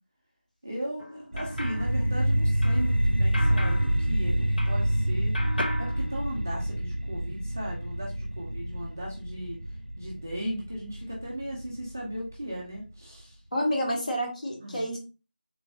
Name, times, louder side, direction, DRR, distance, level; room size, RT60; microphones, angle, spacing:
voice 1, 0.6-5.3 5.8-9.6 10.0-13.4 14.6-14.9, equal, 15° right, -4 dB, 0.3 m, -37 dB
sound 1, 1.0-5.0 5.3-6.8, left 1 dB, 65° left, 0.5 m, -38 dB
sound 2, 1.3-12.3, right 1 dB, 90° right, 0.5 m, -27 dB
voice 2, 13.5-15.0, equal, 45° left, -1 dB, 1.0 m, -29 dB
3.2 x 2.3 x 2.4 m, 0.33 s
figure-of-eight pair, 170°, 5 cm